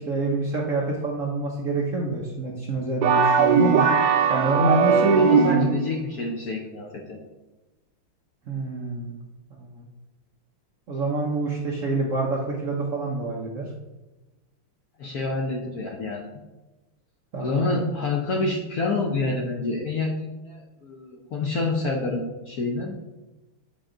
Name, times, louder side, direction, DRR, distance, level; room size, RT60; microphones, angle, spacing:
voice 1, 0.0-3.9 4.3-5.7 8.5-9.2 9.5-9.9 10.9-13.7 17.3-17.9, right 2 dB, 55° right, -2 dB, 0.9 m, -26 dB
sound 1, 3.0-5.9, right 6 dB, 85° right, 0.8 m, -19 dB
voice 2, 4.8-7.2 15.0-16.3 17.4-23.0, left 3 dB, 60° left, 0 dB, 1.0 m, -28 dB
8.0 x 4.8 x 3.8 m, 1.1 s
omnidirectional pair, 2.4 m